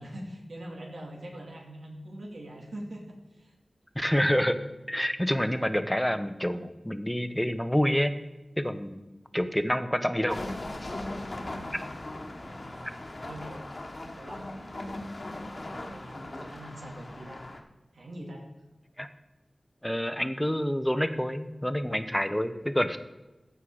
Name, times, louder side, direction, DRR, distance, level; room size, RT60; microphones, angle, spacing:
voice 1, 0.0-3.5 11.0-11.8 12.4-13.6 14.0-15.0 15.5-17.4 17.9-18.4, right 1 dB, 85° right, 0 dB, 2.6 m, -44 dB
voice 2, 4.0-4.6 4.9-8.1 8.6-9.1 9.3-10.4 19.0-19.1 19.8-23.0, equal, 5° left, 10 dB, 0.8 m, -27 dB
sound 1, 10.3-17.6, left 1 dB, 45° left, 1.4 m, -39 dB
14.5 x 5.6 x 4.9 m, 1.1 s
wide cardioid pair, 80°, 0 cm